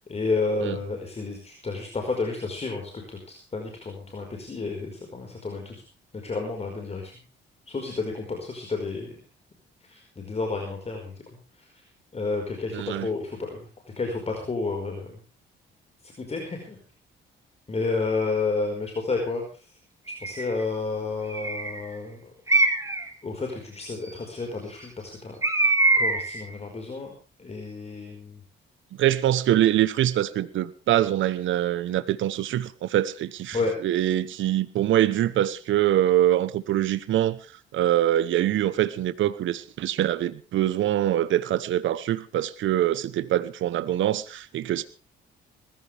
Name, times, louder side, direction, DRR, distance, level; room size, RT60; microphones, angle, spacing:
voice 1, 0.1-5.8 6.2-7.1 7.7-9.2 9.9-11.1 12.1-13.6 14.0-15.1 16.0-16.8 17.7-19.4 20.2-22.2 23.2-25.4 26.0-27.1 27.4-28.4 33.5-33.7, left 3 dB, 30° left, 5.0 m, -30 dB
voice 2, 12.7-13.1 29.0-37.4 37.7-44.8, right 12 dB, 75° right, 1.1 m, -24 dB
Bird, 20.1-20.5 21.3-21.8 22.5-23.1 25.4-26.4, right 2 dB, 15° right, 2.4 m, -23 dB
20.5 x 15.0 x 3.5 m
cardioid pair, 90°, 20 cm